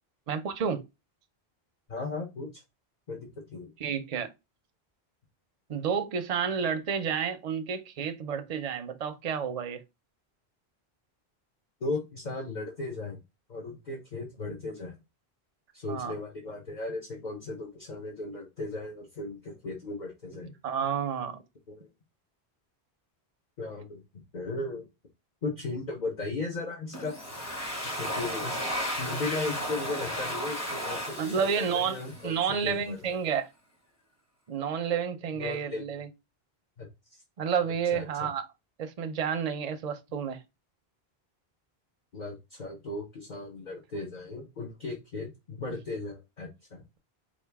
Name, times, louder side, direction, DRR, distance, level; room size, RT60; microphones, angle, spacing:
voice 1, 0.3-0.8 3.8-4.3 5.7-9.8 15.9-16.1 20.6-21.4 31.2-32.0 32.2-33.5 34.5-36.1 37.4-38.4 38.8-40.4, right 7 dB, 45° right, 0.6 m, -30 dB
voice 2, 1.9-2.6 3.1-3.7 11.8-13.2 13.5-14.9 15.7-20.5 21.7-21.9 23.6-24.9 25.4-27.2 28.0-28.6 29.0-32.3 32.6-33.2 35.3-35.9 36.8-37.2 37.9-38.3 42.1-46.8, left 3 dB, 45° left, 1.1 m, -36 dB
Domestic sounds home sounds, 26.9-32.6, equal, 15° left, 1.0 m, -34 dB
4.9 x 2.5 x 3.4 m
omnidirectional pair, 1.1 m